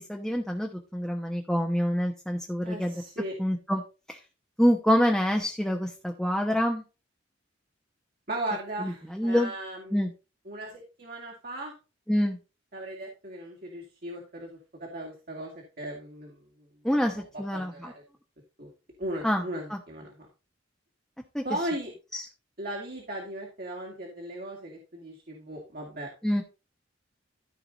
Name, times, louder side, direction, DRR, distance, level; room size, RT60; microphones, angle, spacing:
voice 1, 0.1-2.9 3.4-3.8 4.1-4.2 4.6-6.8 8.8-9.5 9.9-10.1 12.1-12.4 16.8-17.7 19.2-19.4 19.7-19.8 21.3-21.4 22.1-22.3 26.2-26.4, equal, ahead, 1 dB, 1.0 m, -26 dB
voice 2, 2.6-3.3 8.3-10.1 10.4-11.7 12.7-15.5 15.8-17.2 17.5-17.9 18.6-18.7 19.0-20.3 21.4-21.9 22.6-26.1, right 1 dB, 50° right, -1 dB, 2.3 m, -37 dB
14.0 x 4.9 x 3.9 m, 0.31 s
head